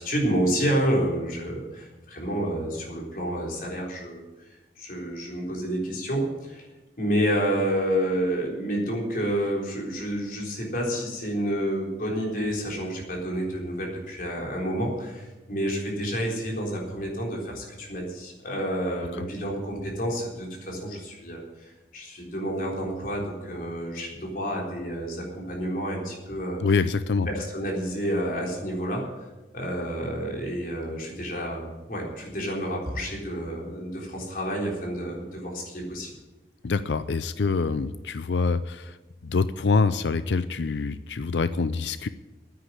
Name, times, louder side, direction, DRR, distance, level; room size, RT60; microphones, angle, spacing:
voice 1, 0.0-4.5 4.8-6.7 7.0-26.6 27.3-36.1, equal, 50° left, -1 dB, 3.8 m, -29 dB
voice 2, 26.6-27.3 36.6-39.0 39.2-42.1, left 4 dB, 80° left, 13 dB, 0.5 m, -25 dB
9.7 x 9.4 x 9.9 m, 1.1 s
head